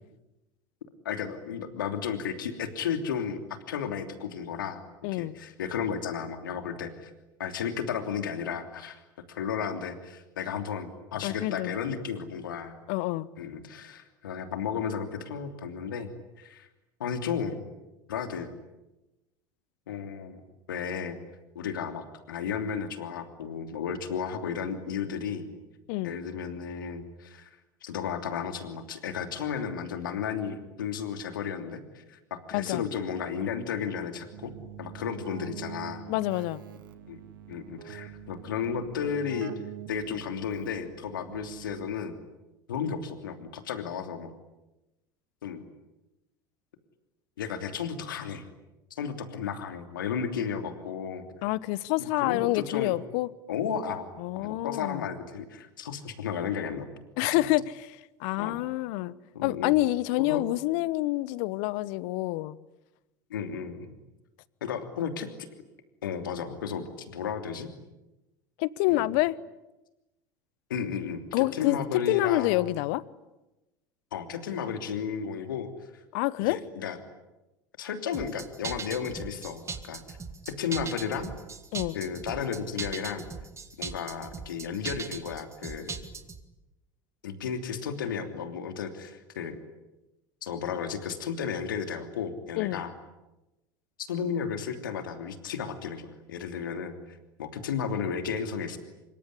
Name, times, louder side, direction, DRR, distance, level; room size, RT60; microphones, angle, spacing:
voice 1, 1.0-3.4 3.7-4.8 5.1-7.1 7.4-9.0 9.3-12.8 13.4-16.1 16.4-16.7 17.0-17.6 18.1-18.5 19.9-20.4 20.7-21.2 21.5-25.5 26.0-27.5 27.8-34.5 34.8-36.1 37.1-37.2 37.5-39.5 39.9-42.1 42.7-44.3 45.4-45.6 47.4-48.4 48.9-51.2 52.0-52.9 53.5-54.1 54.4-56.9 57.2-57.5 58.4-58.6 59.3-59.8 60.2-60.4 63.3-63.9 64.6-65.3 66.0-67.7 68.9-69.0 70.7-72.7 74.1-75.7 76.5-77.0 77.8-80.2 80.4-81.3 81.9-83.3 83.8-86.0 87.2-89.6 90.4-92.9 94.1-98.8, left 7 dB, 80° left, 7 dB, 3.0 m, -33 dB
voice 2, 5.0-5.3 11.2-11.7 12.9-13.3 25.9-26.1 32.5-32.8 36.1-36.6 51.4-53.3 54.2-55.0 57.2-59.1 59.4-62.6 68.6-69.4 71.3-73.0 76.1-76.6 81.7-82.0 92.6-92.8, left 18 dB, 65° left, 20 dB, 1.1 m, -27 dB
Keyboard (musical), 34.3-42.2, right 10 dB, 80° right, 2.0 m, -45 dB
sound 1, 78.1-86.4, right 5 dB, 25° right, 2.7 m, -39 dB
26.0 x 23.5 x 9.9 m, 1.0 s
hypercardioid pair, 75°, 11 cm